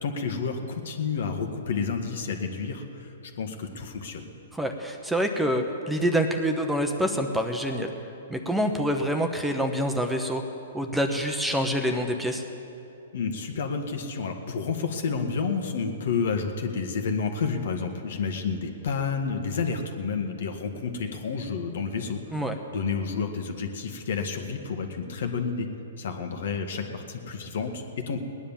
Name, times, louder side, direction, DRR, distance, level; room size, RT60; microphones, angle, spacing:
voice 1, 0.0-4.3 13.1-22.4 22.7-25.7 26.0-28.2, left 5 dB, 65° left, 5 dB, 1.7 m, -30 dB
voice 2, 4.5-7.9 8.3-10.4 10.7-12.4 22.3-22.6, equal, 5° right, 4 dB, 1.0 m, -26 dB
18.5 x 10.0 x 7.3 m, 2.9 s
hypercardioid pair, 140°, 0 cm